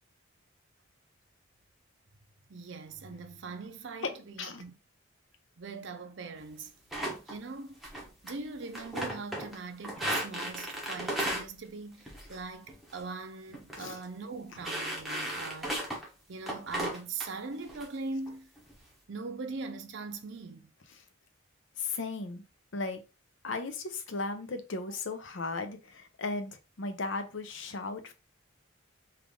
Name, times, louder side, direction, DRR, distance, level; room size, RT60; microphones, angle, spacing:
voice 1, 2.5-4.1 4.4-4.7 5.6-6.7 7.3-7.7 8.2-15.8 16.3-18.5 19.1-20.7, right 4 dB, 60° right, 0.5 m, -41 dB
voice 2, 4.0-4.6 13.8-14.0 20.9-21.0 21.8-22.4 22.7-23.0 23.4-28.1, left 3 dB, 65° left, 0.7 m, -36 dB
sound 1, 6.9-7.4 7.8-8.3 8.6-9.6 9.8-11.5 12.1-12.4 12.7-13.0 13.5-13.8 14.0-14.1 14.6-16.1 16.5-17.3 17.7-17.8 18.3-18.7, right 1 dB, ahead, 0.8 m, -35 dB
3.4 x 2.5 x 3.6 m
head